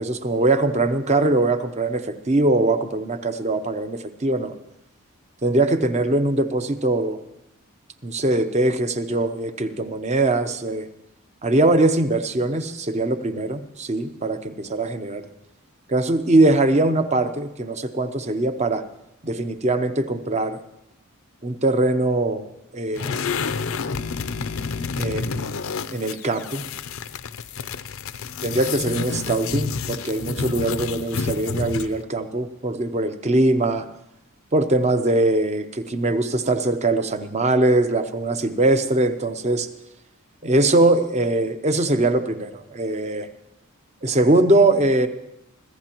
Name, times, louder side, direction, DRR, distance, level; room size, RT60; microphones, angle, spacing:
voice 1, 0.0-4.5 5.4-7.2 8.0-10.9 11.4-15.2 15.9-18.8 19.2-20.6 21.4-22.5 22.7-23.2 25.0-25.6 25.9-26.6 28.4-33.9 34.5-39.7 40.4-43.3 44.0-45.1, right 2 dB, 30° right, 9 dB, 0.8 m, -21 dB
sound 1, 22.9-32.0, left 5 dB, 70° left, 0.6 m, -29 dB
24.5 x 15.5 x 3.0 m, 0.85 s
head